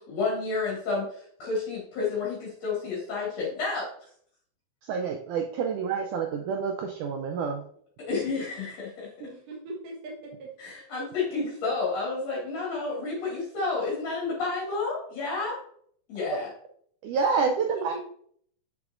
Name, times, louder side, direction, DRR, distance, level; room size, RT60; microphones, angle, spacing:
voice 1, 0.1-3.9 8.1-9.3 10.6-15.6 16.1-16.5, left 3 dB, 50° left, -5 dB, 2.9 m, -30 dB
voice 2, 4.9-7.6 17.0-17.9, right 5 dB, 85° right, 4 dB, 1.8 m, -28 dB
voice 3, 9.3-10.5 17.6-18.0, right 3 dB, 65° right, -2 dB, 2.7 m, -39 dB
8.1 x 6.9 x 2.6 m, 0.62 s
omnidirectional pair, 4.3 m